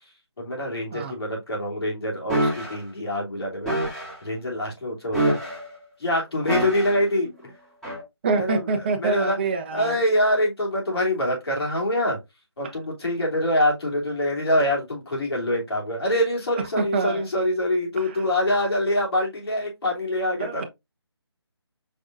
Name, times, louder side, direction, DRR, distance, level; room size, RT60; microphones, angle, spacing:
voice 1, 0.4-3.7 4.2-5.4 6.0-7.5 8.4-8.6 9.0-9.4 9.7-12.2 12.6-20.7, left 1 dB, 65° left, 2.9 m, -25 dB
sound 1, 2.3-2.8 3.7-4.1 5.1-5.7 6.5-7.1 7.8-8.0, right 1 dB, 5° left, 1.8 m, -25 dB
voice 2, 8.2-10.0 16.8-17.2 18.0-18.2 20.4-20.6, right 4 dB, 25° right, 0.7 m, -26 dB
5.3 x 3.7 x 2.5 m
figure-of-eight pair, 160°, 14 cm